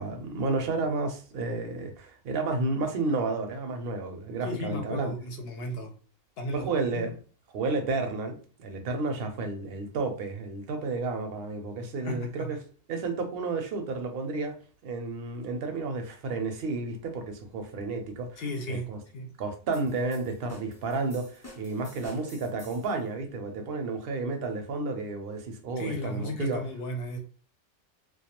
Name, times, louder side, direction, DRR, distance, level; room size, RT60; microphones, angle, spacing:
voice 1, 0.0-5.1 6.5-7.1 7.5-12.6 12.9-14.5 14.8-18.4 18.7-19.0 19.4-26.6, right 3 dB, 65° right, 0.7 m, -31 dB
voice 2, 4.4-5.9 6.4-7.1 12.0-12.5 18.4-18.9 19.1-19.3 25.8-27.2, left 1 dB, 60° left, 0.8 m, -35 dB
sound 1, 19.7-23.0, left 1 dB, 20° left, 0.4 m, -50 dB
2.2 x 2.2 x 2.9 m
omnidirectional pair, 1.2 m